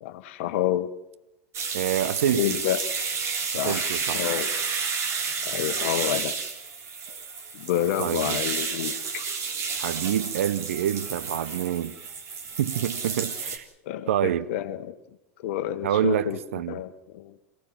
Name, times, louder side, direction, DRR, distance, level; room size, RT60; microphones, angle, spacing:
voice 1, 0.0-0.9 2.3-2.8 3.5-4.5 5.5-6.4 7.5-9.3 13.8-15.0 15.4-16.4 16.7-17.4, left 12 dB, 60° left, 1.3 m, -29 dB
sound 1, 1.5-13.6, right 5 dB, 40° right, 3.5 m, -31 dB
voice 2, 1.7-2.6 3.6-4.2 8.0-8.4 9.7-12.0 12.6-13.7 14.1-14.5 15.8-16.8, right 11 dB, 70° right, 0.9 m, -27 dB
27.0 x 17.0 x 7.5 m
hypercardioid pair, 90°, 8 cm